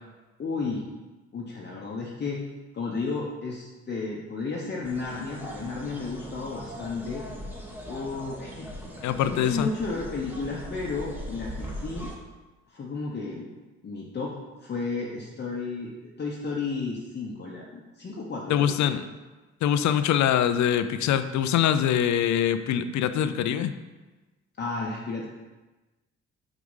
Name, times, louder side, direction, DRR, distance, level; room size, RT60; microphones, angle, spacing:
voice 1, 0.4-0.9 1.3-2.4 2.7-7.2 7.9-8.7 9.2-12.1 12.7-13.5 13.8-18.9 24.6-25.3, left 4 dB, 35° left, -3 dB, 0.9 m, -33 dB
sound 1, 4.8-12.2, equal, 5° right, 1.2 m, -40 dB
voice 2, 9.0-9.7 18.5-19.0 19.6-23.7, left 9 dB, 70° left, 11 dB, 0.5 m, -24 dB
4.9 x 4.8 x 5.5 m, 1.2 s
cardioid pair, 90°, 30 cm